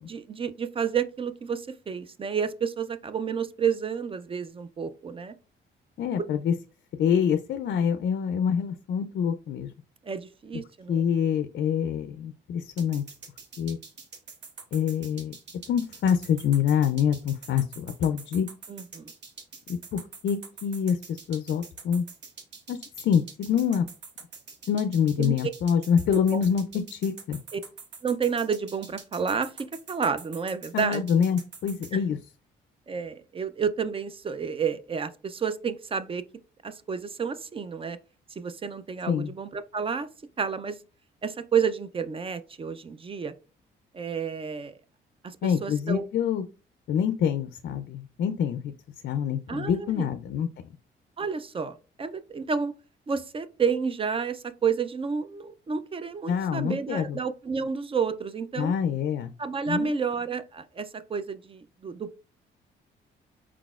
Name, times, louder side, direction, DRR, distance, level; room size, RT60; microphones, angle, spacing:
voice 1, 0.0-5.3 10.1-11.0 18.7-19.1 25.2-25.3 26.3-26.4 27.5-27.6 28.0-31.0 32.9-36.2 36.6-38.0 38.4-40.1 40.4-40.8 41.2-43.3 43.9-44.7 45.6-46.1 49.5-50.1 51.2-52.7 53.1-58.7 59.4-62.2, right 6 dB, 30° right, 0.4 m, -30 dB
voice 2, 6.0-6.5 7.0-9.7 10.9-13.0 13.6-13.8 14.7-15.3 15.7-18.5 19.7-22.1 22.7-23.9 24.7-27.4 30.7-32.2 39.1-39.3 45.4-46.5 46.9-48.7 49.0-50.5 56.3-57.2 58.6-59.3 59.7-60.0, left 8 dB, 60° left, 0.4 m, -26 dB
sound 1, 12.8-31.9, right 5 dB, 60° right, 1.0 m, -45 dB
4.5 x 4.0 x 2.3 m
cardioid pair, 90°, 20 cm